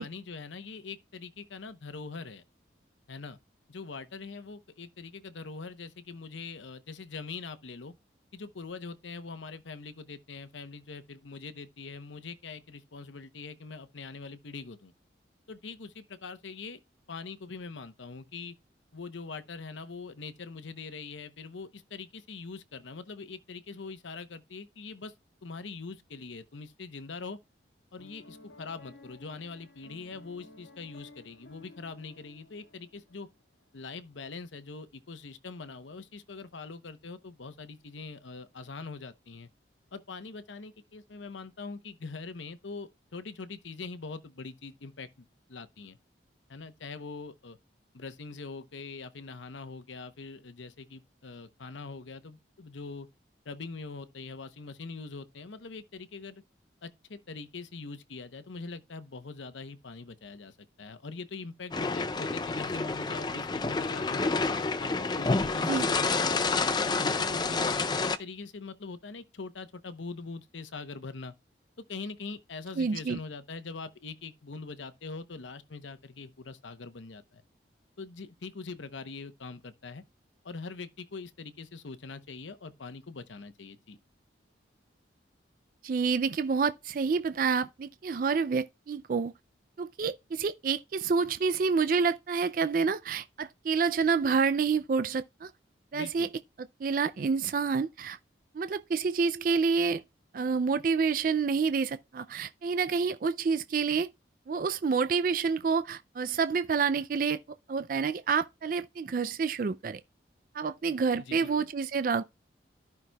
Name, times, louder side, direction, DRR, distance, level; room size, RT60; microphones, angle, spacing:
voice 1, 0.0-2.4 3.1-3.4 3.7-7.9 8.3-14.9 15.5-16.8 17.1-18.6 18.9-25.1 25.4-27.4 27.9-33.3 33.7-39.5 39.9-46.0 46.5-47.6 47.9-53.1 53.4-56.4 56.8-64.2 64.8-66.5 66.8-71.3 71.9-77.4 78.0-80.0 80.4-84.0 95.9-96.3 111.2-111.7, left 4 dB, 85° left, 0.8 m, -43 dB
Piano, 28.0-33.3, left 2 dB, 70° left, 1.7 m, -54 dB
sound 1, 61.7-68.2, left 3 dB, 20° left, 0.4 m, -29 dB
voice 2, 72.8-73.2 85.8-89.3 89.8-95.5 95.9-96.3 96.8-98.2 98.5-100.0 100.3-104.1 104.5-107.4 107.7-110.0 110.5-112.2, right 5 dB, 45° right, 0.3 m, -28 dB
14.0 x 5.9 x 2.3 m
head